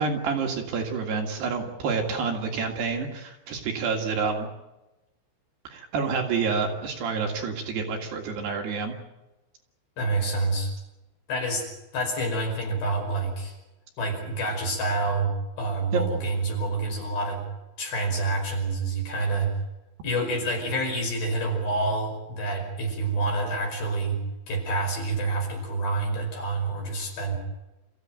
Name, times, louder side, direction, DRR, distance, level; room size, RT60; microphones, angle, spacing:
voice 1, 0.0-4.5 5.7-9.0 15.9-16.0, right 5 dB, 60° right, 2 dB, 3.8 m, -28 dB
voice 2, 10.0-10.7 11.3-11.7 11.9-13.6 14.0-17.4 17.8-19.5 20.0-24.2 24.5-27.4, right 2 dB, 50° left, 1 dB, 6.9 m, -27 dB
27.5 x 15.5 x 9.2 m, 1.0 s
omnidirectional pair, 5.7 m